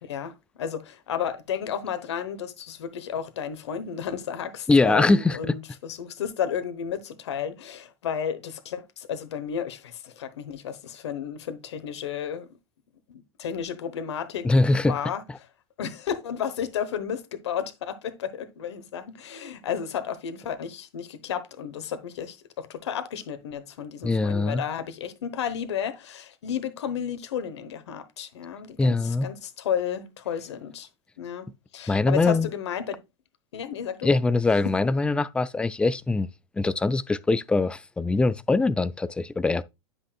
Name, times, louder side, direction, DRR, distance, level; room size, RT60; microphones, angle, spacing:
voice 1, 0.0-12.5 13.1-14.5 14.9-15.2 15.8-30.9 31.2-33.0 33.5-34.1, left 8 dB, 75° left, 1.0 m, -32 dB
voice 2, 4.7-5.6 14.4-15.0 24.0-24.6 28.8-29.3 31.9-32.5 34.0-36.3 36.6-39.6, left 3 dB, 5° left, 0.3 m, -22 dB
9.7 x 6.0 x 2.3 m
hypercardioid pair, 95°, 15 cm